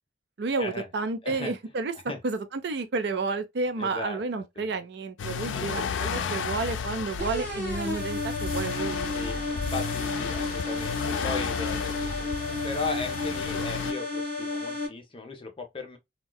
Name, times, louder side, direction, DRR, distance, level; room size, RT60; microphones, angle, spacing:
voice 1, 0.4-1.9 2.2-9.1, right 3 dB, 60° right, 0.5 m, -31 dB
voice 2, 1.2-1.5 2.1-2.2 3.8-4.2 4.6-4.7 5.5-6.4 9.1-12.3 12.6-16.0, left 3 dB, 30° left, 0.6 m, -37 dB
sound 1, 5.2-13.9, left 6 dB, 90° left, 0.4 m, -33 dB
sound 2, 7.2-14.9, left 2 dB, 10° left, 1.8 m, -32 dB
3.6 x 2.2 x 2.2 m
head